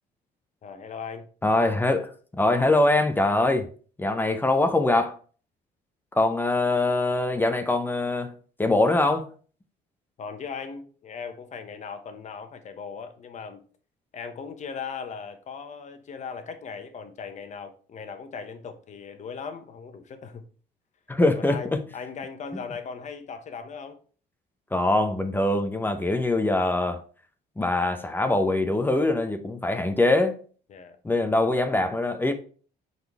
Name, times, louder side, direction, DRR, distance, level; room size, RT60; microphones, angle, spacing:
voice 1, 0.6-1.3 10.2-13.6 14.1-20.4 21.4-24.0 30.7-31.0, left 6 dB, 45° left, 1.1 m, -38 dB
voice 2, 1.4-3.7 4.0-5.2 6.1-8.3 8.6-9.3 21.1-21.8 24.7-27.0 27.6-30.4 31.0-32.3, left 2 dB, 10° left, 0.7 m, -23 dB
5.2 x 4.1 x 4.8 m
cardioid pair, 110°, 17 cm